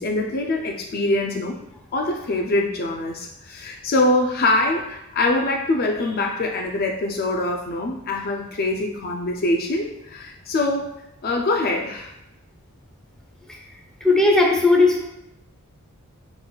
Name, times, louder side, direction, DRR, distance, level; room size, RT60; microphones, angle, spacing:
voice 1, 0.0-1.6 1.9-10.9 11.2-12.1, left 2 dB, 45° left, 2 dB, 0.4 m, -24 dB
voice 2, 14.0-15.0, left 2 dB, 5° left, -1 dB, 0.7 m, -16 dB
5.4 x 3.9 x 2.3 m, 0.85 s
head